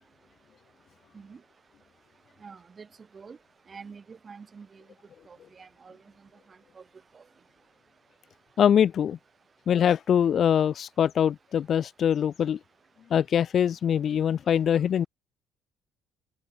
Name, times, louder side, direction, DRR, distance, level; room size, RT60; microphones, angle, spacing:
voice 1, 2.4-2.9 3.1-3.4 3.7-4.8 5.3-6.0 6.8-6.9 7.1-7.2, right 5 dB, 25° right, 4.8 m, -46 dB
voice 2, 8.6-9.2 9.7-12.6 13.1-15.1, left 9 dB, 40° left, 1.0 m, -23 dB
cardioid pair, 170°, 0 cm